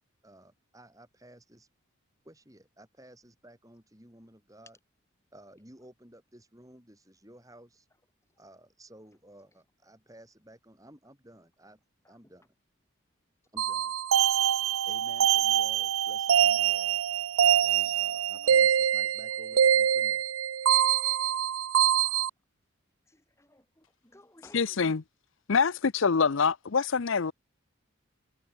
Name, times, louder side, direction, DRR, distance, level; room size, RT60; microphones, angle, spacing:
voice 1, 0.2-1.7 2.2-4.8 5.3-7.9 8.4-11.8 12.1-12.5 13.5-13.9 14.9-17.0 17.6-20.2, right 1 dB, 15° right, 7.4 m, -54 dB
sound 1, 13.6-22.3, right 9 dB, 75° right, 0.5 m, -24 dB
voice 2, 17.6-18.6 22.0-22.1 23.1-24.9, left 2 dB, 15° left, 2.8 m, -57 dB
voice 3, 24.5-25.0 25.5-27.3, left 5 dB, 65° left, 0.6 m, -25 dB
head